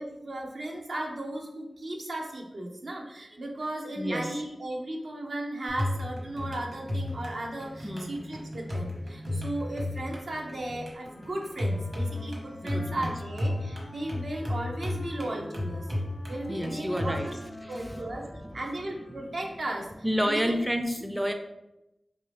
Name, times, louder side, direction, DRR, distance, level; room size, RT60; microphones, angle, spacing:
voice 1, 0.0-15.9 16.3-17.4 17.7-18.3 18.5-19.9 20.2-20.6, right 1 dB, 80° right, 0 dB, 0.6 m, -35 dB
voice 2, 4.0-4.3 7.8-8.1 12.6-13.1 16.5-17.3 17.6-18.1 18.4-18.6 20.0-21.3, equal, 10° right, 5 dB, 0.4 m, -30 dB
sound 1, 5.7-17.2, left 1 dB, 60° right, 1.1 m, -34 dB
Wind instrument woodwind instrument, 11.0-19.6, left 1 dB, 70° left, 0.6 m, -48 dB
3.0 x 2.6 x 3.3 m, 0.90 s
cardioid pair, 45°, 0 cm